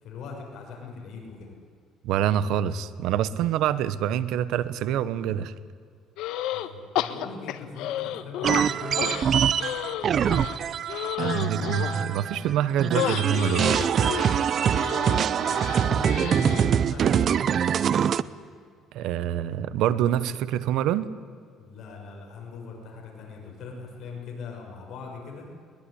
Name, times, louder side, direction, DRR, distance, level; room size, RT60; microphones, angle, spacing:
voice 1, 0.0-1.5 6.5-9.1 14.8-17.1 21.6-25.4, left 4 dB, 55° left, 0 dB, 6.2 m, -40 dB
voice 2, 2.0-5.5 11.2-13.7 14.3-14.4 18.9-21.1, right 10 dB, 70° right, 16 dB, 1.0 m, -26 dB
sound 1, 6.2-6.7 6.9-8.6 9.0-12.0 12.9-16.7, left 13 dB, 80° left, 1.3 m, -32 dB
sound 2, 8.4-12.5 12.8-18.2, right 8 dB, 40° right, 0.6 m, -24 dB
22.0 x 21.0 x 10.0 m, 2.1 s
cardioid pair, 155°, 0 cm